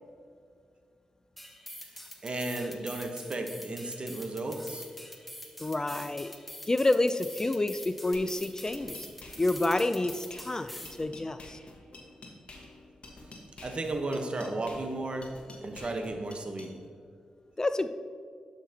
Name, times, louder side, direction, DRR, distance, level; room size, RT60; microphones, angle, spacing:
sound 1, 1.4-11.0, equal, 5° left, 1.1 m, -45 dB
voice 1, 2.2-4.8 13.6-15.3 15.6-16.7, right 2 dB, 45° right, 4 dB, 1.0 m, -34 dB
voice 2, 5.6-6.3 6.7-9.0 9.4-11.6 17.6-17.9, left 2 dB, 25° left, 11 dB, 0.4 m, -28 dB
sound 2, 8.1-16.7, left 2 dB, 50° left, 1.4 m, -49 dB
11.5 x 5.8 x 2.9 m, 2.2 s
supercardioid pair, 45°, 2 cm